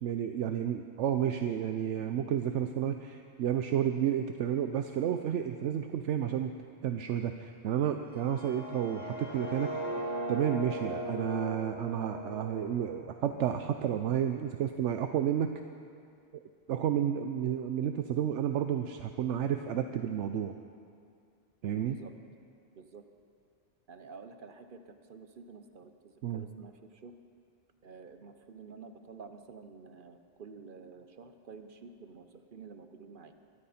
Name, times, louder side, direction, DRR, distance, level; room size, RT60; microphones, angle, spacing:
voice 1, 0.0-6.5 6.8-9.7 10.3-15.5 16.7-20.5 21.6-22.0 26.2-26.4, right 9 dB, 80° right, 7 dB, 0.9 m, -31 dB
sound 1, 8.1-14.0, right 1 dB, 55° left, 1.7 m, -39 dB
voice 2, 22.7-23.0 23.9-27.1 27.8-33.3, right 5 dB, 50° right, 8 dB, 1.0 m, -50 dB
23.0 x 13.0 x 4.3 m, 2.3 s
omnidirectional pair, 1.2 m